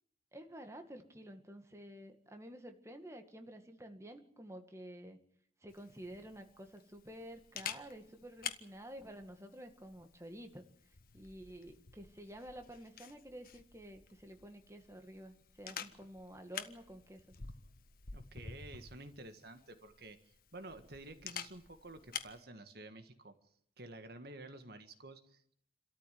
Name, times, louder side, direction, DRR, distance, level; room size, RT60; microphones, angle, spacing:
voice 1, 0.3-5.2 5.6-10.6 11.1-17.4, right 1 dB, 15° right, 5 dB, 2.0 m, -51 dB
Camera, 5.7-22.4, left 7 dB, 55° left, 1.5 m, -50 dB
voice 2, 18.1-23.3 23.8-25.5, right 2 dB, 60° right, 8 dB, 1.8 m, -51 dB
28.5 x 13.5 x 9.4 m, 0.68 s
head